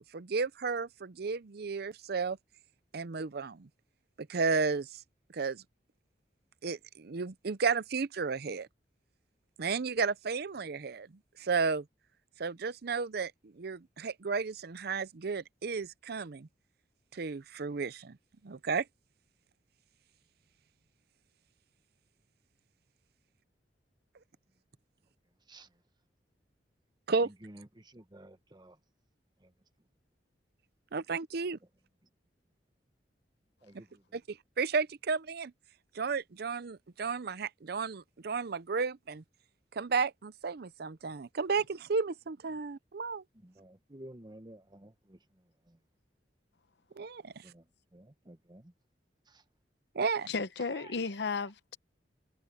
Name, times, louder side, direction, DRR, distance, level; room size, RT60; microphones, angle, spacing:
voice 1, 0.0-2.4 2.9-3.7 4.3-5.0 5.3-5.6 6.6-8.7 9.6-11.1 11.4-11.8 12.4-16.5 17.1-18.2 18.4-18.8 27.1-27.3 30.9-31.6 34.1-35.5 35.9-39.2 39.7-43.2 47.0-47.4 49.9-50.3, right 5 dB, 65° right, 0.6 m, -33 dB
voice 2, 25.5-25.8 27.2-28.8 29.4-29.5 33.6-34.2 43.3-45.8 47.4-48.7 49.3-49.4 50.6-51.0 51.4-51.5, right 1 dB, 25° right, 1.2 m, -53 dB
voice 3, 50.3-51.8, left 4 dB, 70° left, 0.8 m, -34 dB
head